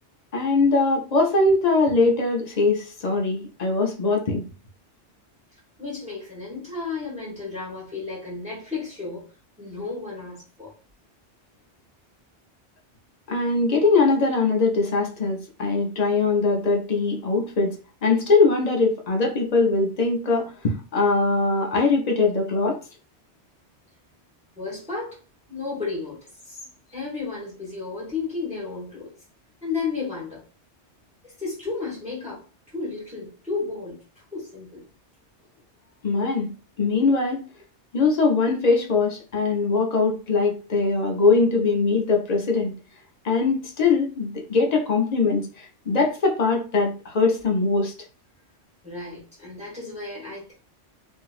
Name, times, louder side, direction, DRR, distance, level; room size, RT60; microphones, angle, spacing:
voice 1, 0.3-4.5 13.3-17.8 18.0-22.8 36.0-36.5 36.8-37.4 37.9-42.7 43.2-47.9, left 3 dB, 45° left, 1 dB, 0.6 m, -21 dB
voice 2, 5.8-9.2 9.6-10.7 24.5-25.2 25.5-26.6 26.9-29.1 29.6-30.4 31.2-32.4 32.7-34.0 34.3-34.8 48.8-50.5, left 4 dB, 5° right, -6 dB, 1.2 m, -33 dB
2.9 x 2.6 x 2.3 m, 0.36 s
omnidirectional pair, 1.2 m